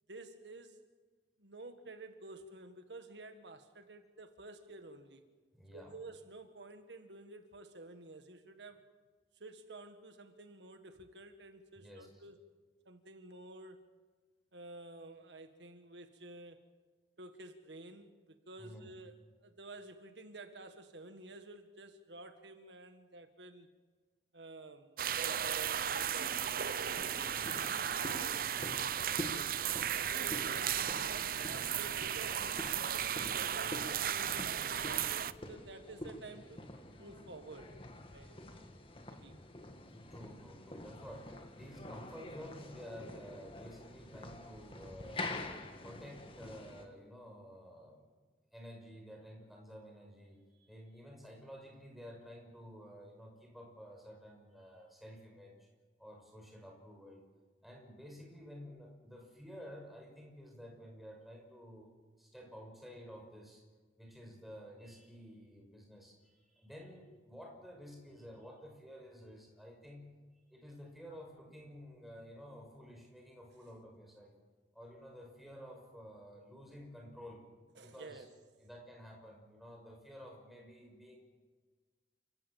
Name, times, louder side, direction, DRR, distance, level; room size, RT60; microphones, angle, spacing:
voice 1, 0.1-0.8 1.4-5.2 5.7-8.9 9.4-12.4 12.9-13.8 14.5-16.6 17.2-19.2 19.4-23.7 24.3-27.1 27.4-27.7 28.2-28.5 29.3-37.7 38.1-38.4 39.1-39.4 77.8-78.3, right 2 dB, 80° right, 7 dB, 1.8 m, -52 dB
voice 2, 5.5-6.0 11.8-12.2 18.6-18.9 39.9-45.4 45.8-48.0 48.5-55.6 56.0-57.3 57.6-61.9 62.2-63.6 64.0-70.1 70.5-74.4 74.7-77.5 77.8-78.3 78.6-81.2, equal, ahead, 0 dB, 6.0 m, -52 dB
sound 1, 25.0-35.3, right 9 dB, 55° right, 0.7 m, -35 dB
sound 2, 27.0-46.9, left 1 dB, 30° left, 2.0 m, -47 dB
29.5 x 17.0 x 7.3 m, 1.4 s
head